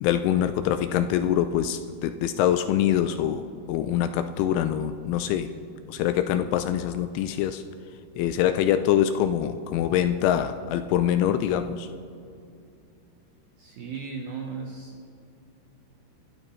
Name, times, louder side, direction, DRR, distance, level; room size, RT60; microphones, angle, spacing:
voice 1, 0.0-3.4 3.7-5.5 5.9-7.6 8.2-11.9, left 10 dB, 85° left, 9 dB, 2.8 m, -24 dB
voice 2, 13.6-15.0, right 5 dB, 75° right, 0 dB, 2.2 m, -36 dB
27.5 x 12.5 x 3.2 m, 2.5 s
omnidirectional pair, 5.8 m